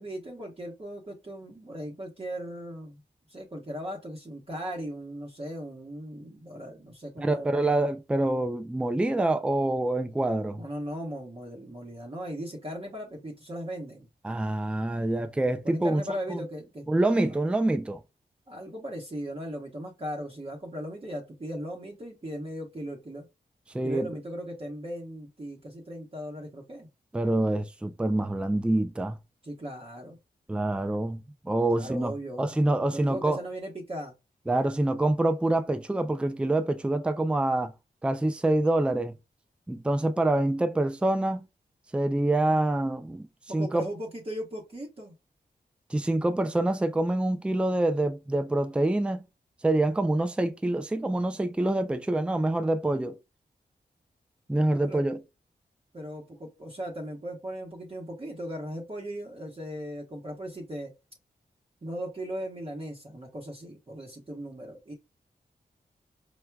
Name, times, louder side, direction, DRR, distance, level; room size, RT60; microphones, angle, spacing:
voice 1, 0.0-3.0 3.3-7.6 10.6-14.1 15.6-17.4 18.5-23.3 23.8-26.9 29.4-30.2 31.7-32.5 32.9-34.1 43.5-45.1 54.7-55.0 55.9-60.9 61.8-64.9, equal, 35° right, 1.0 m, -38 dB
voice 2, 7.2-10.6 14.2-16.0 16.3-16.4 16.9-18.0 23.7-24.1 27.1-29.2 30.5-32.1 32.4-33.4 34.5-37.7 38.0-39.1 39.7-41.5 41.9-43.3 43.5-43.9 45.9-49.2 49.6-53.2 54.5-55.2, right 2 dB, 5° right, 0.4 m, -26 dB
4.5 x 2.2 x 2.3 m
cardioid pair, 65°, 16 cm